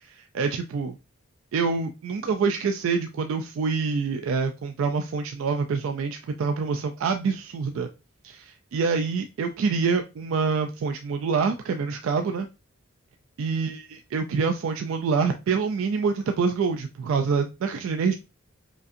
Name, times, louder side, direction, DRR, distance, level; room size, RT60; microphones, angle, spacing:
voice 1, 0.1-1.0 1.5-7.9 8.2-12.5 13.4-18.1, right 5 dB, 75° right, 6 dB, 0.3 m, -26 dB
5.1 x 2.5 x 2.5 m, 0.28 s
head